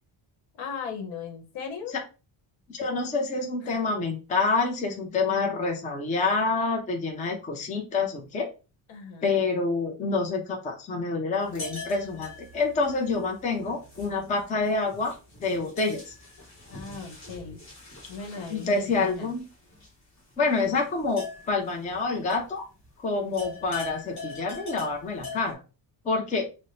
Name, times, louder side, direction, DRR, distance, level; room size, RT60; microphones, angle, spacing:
voice 1, 0.6-2.0 3.6-3.8 8.9-9.4 16.7-17.6 18.1-19.3, left 5 dB, 75° left, 4 dB, 1.0 m, -37 dB
voice 2, 2.7-8.5 9.2-15.1 15.4-16.1 18.5-19.4 20.4-22.7 23.0-25.6 26.0-26.5, left 3 dB, 15° left, 2 dB, 0.4 m, -27 dB
sound 1, 11.4-22.9 23.1-25.5, left 3 dB, 35° left, 1.1 m, -43 dB
5.7 x 2.0 x 2.6 m, 0.32 s
cardioid pair, 175°, 48 cm